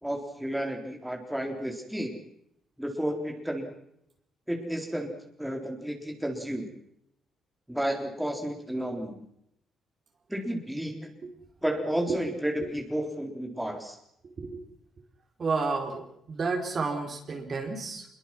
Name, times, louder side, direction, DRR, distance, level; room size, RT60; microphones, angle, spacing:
voice 1, 0.0-2.2 2.8-3.7 4.5-5.1 5.4-6.7 7.7-9.2 10.3-11.1 11.6-14.0, equal, 5° right, 2 dB, 4.0 m, -32 dB
voice 2, 15.4-18.1, right 4 dB, 45° right, 3 dB, 4.6 m, -31 dB
25.5 x 22.5 x 6.2 m, 0.75 s
cardioid pair, 90°, 0 cm